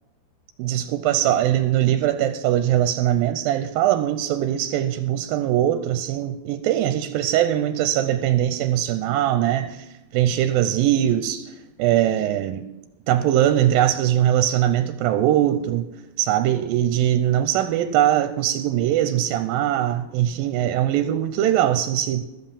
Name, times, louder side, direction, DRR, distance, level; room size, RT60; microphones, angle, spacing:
voice 1, 0.6-9.9 10.1-11.5 11.8-12.6 13.1-15.9 16.2-22.2, right 12 dB, 85° right, 2.4 m, -21 dB
13.5 x 7.6 x 7.2 m
omnidirectional pair, 4.2 m